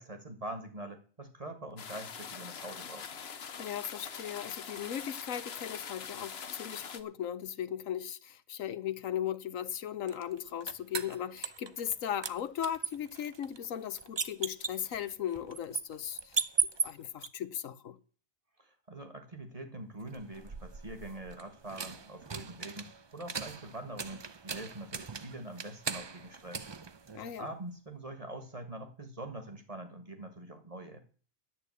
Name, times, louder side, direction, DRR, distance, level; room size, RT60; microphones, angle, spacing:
voice 1, 0.0-3.2 18.6-26.6 27.4-31.0, right 1 dB, 25° right, 1.6 m, -44 dB
sound 1, 1.8-7.0, left 6 dB, 50° left, 1.1 m, -43 dB
voice 2, 3.6-16.5 16.8-18.0 27.1-27.5, left 9 dB, 80° left, 1.2 m, -37 dB
sound 2, 10.1-12.0 12.2-17.3 20.1-27.6, right 5 dB, 45° right, 0.3 m, -38 dB
11.0 x 8.3 x 8.1 m
omnidirectional pair, 1.4 m